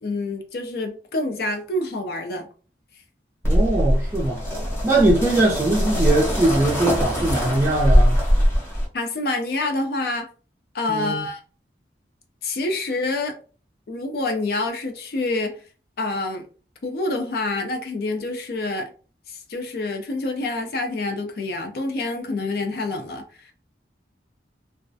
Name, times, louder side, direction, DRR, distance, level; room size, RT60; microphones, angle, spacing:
voice 1, 0.0-2.5 8.9-10.3 10.7-11.4 12.4-13.4 13.9-15.6 16.0-16.5 16.8-18.9 19.3-23.5, left 2 dB, 60° left, 0.4 m, -27 dB
sound 1, 3.4-8.9, equal, 15° left, 0.8 m, -21 dB
voice 2, 3.5-4.4 4.8-8.2 10.9-11.2, right 2 dB, 15° right, 0.4 m, -21 dB
2.3 x 2.0 x 2.6 m
head